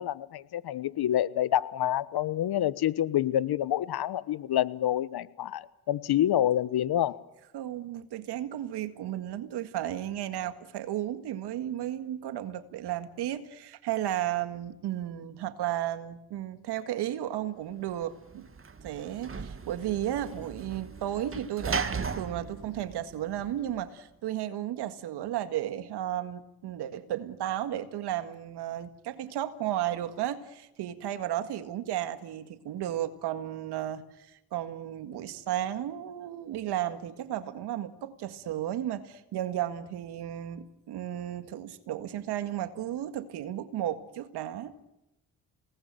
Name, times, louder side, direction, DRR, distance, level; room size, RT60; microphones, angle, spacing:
voice 1, 0.0-7.2, left 12 dB, 65° left, 1.2 m, -27 dB
voice 2, 7.5-18.5 18.8-44.7, right 12 dB, 75° right, 1.9 m, -34 dB
Sliding door / Slam, 18.0-23.8, right 5 dB, 30° right, 2.0 m, -37 dB
27.5 x 19.0 x 9.2 m
supercardioid pair, 50°, 40 cm